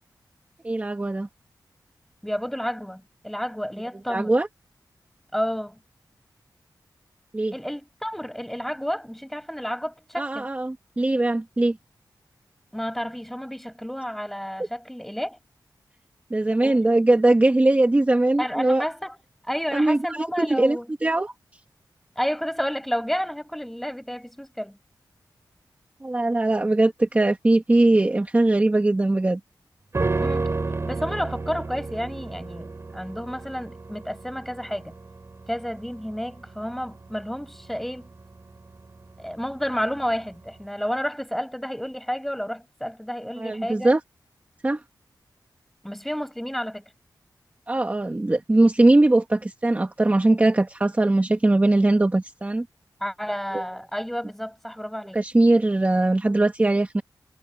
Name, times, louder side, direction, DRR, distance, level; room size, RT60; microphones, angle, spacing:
voice 1, 0.6-1.3 4.1-4.5 7.3-7.5 10.2-11.8 16.3-18.8 19.7-21.3 26.0-29.4 43.4-44.0 44.6-44.8 47.7-52.7 53.5-53.6 55.1-57.0, right 2 dB, 20° right, 1.7 m, -20 dB
voice 2, 2.2-4.3 5.3-5.8 7.5-10.5 12.7-15.4 16.6-16.8 18.4-19.2 19.5-20.9 22.2-24.8 30.2-30.5 30.9-35.0 35.5-38.1 39.2-43.9 45.8-46.8 53.0-55.2, equal, 5° left, 6.0 m, -31 dB
sound 1, 29.9-39.3 39.6-39.7, right 3 dB, 35° right, 6.7 m, -31 dB
wide cardioid pair, 145°, 7 cm